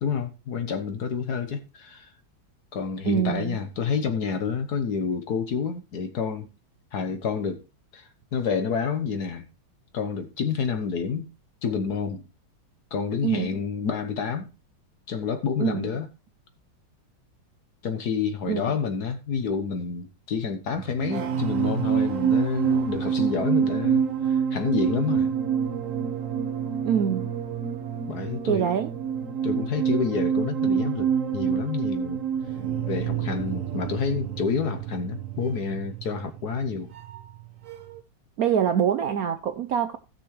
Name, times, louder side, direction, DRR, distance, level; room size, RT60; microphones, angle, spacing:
voice 1, 0.0-2.1 2.7-6.5 6.9-7.6 7.9-9.5 9.9-11.3 11.6-12.2 12.9-14.5 15.1-16.1 17.8-25.3 28.1-28.7 29.4-32.2 32.9-36.9, left 6 dB, 55° left, 1.5 m, -29 dB
voice 2, 3.0-3.6 13.2-13.5 15.6-15.9 18.5-18.7 26.8-27.3 28.5-28.9 38.4-40.0, right 8 dB, 70° right, 0.8 m, -24 dB
sound 1, 20.8-37.4 37.7-38.0, right 7 dB, 50° right, 1.1 m, -27 dB
16.5 x 6.1 x 3.2 m
omnidirectional pair, 2.2 m